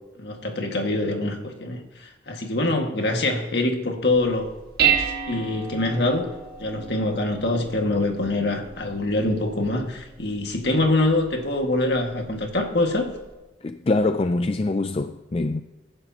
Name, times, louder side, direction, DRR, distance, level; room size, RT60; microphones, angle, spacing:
voice 1, 0.2-4.5 4.8-6.2 6.6-13.1, left 2 dB, 55° left, 1.9 m, -24 dB
Dishes pots and pans, 4.1-13.3, right 8 dB, 50° right, 1.7 m, -32 dB
voice 2, 13.6-15.6, left 2 dB, 30° left, 0.4 m, -24 dB
22.5 x 11.0 x 2.9 m
head